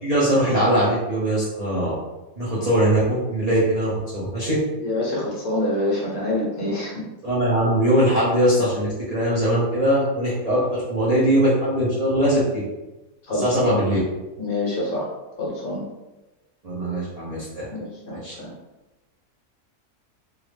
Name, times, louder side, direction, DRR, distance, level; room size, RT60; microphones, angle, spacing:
voice 1, 0.0-1.9 2.4-4.6 7.2-12.6 13.3-14.0 16.6-17.7 18.1-18.3, right 1 dB, 40° right, -9 dB, 0.5 m, -21 dB
voice 2, 4.8-7.0 13.3-13.8 14.4-15.0 15.4-15.8 17.7-18.5, left 1 dB, 70° left, -5 dB, 1.4 m, -26 dB
3.6 x 2.0 x 3.2 m, 1.1 s
omnidirectional pair, 1.6 m